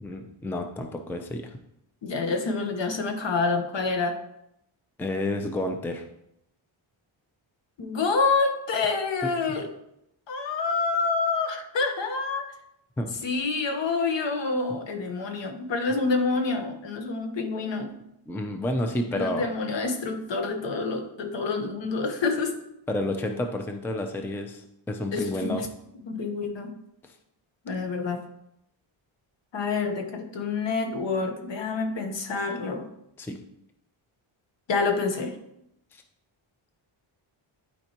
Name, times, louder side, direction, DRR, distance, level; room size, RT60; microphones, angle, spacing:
voice 1, 0.0-1.6 5.0-6.1 9.2-9.3 13.0-13.3 14.7-14.8 18.3-19.5 22.9-25.7 27.0-27.2 33.2-33.4 35.9-36.0, left 1 dB, 5° left, 5 dB, 0.4 m, -30 dB
voice 2, 2.0-4.2 7.8-9.7 10.3-12.5 13.2-17.9 19.1-22.6 25.1-25.7 26.0-26.8 27.6-28.2 29.5-32.9 34.7-35.4, left 4 dB, 60° left, 6 dB, 1.2 m, -27 dB
12.0 x 4.5 x 2.9 m, 0.81 s
wide cardioid pair, 140°, 49 cm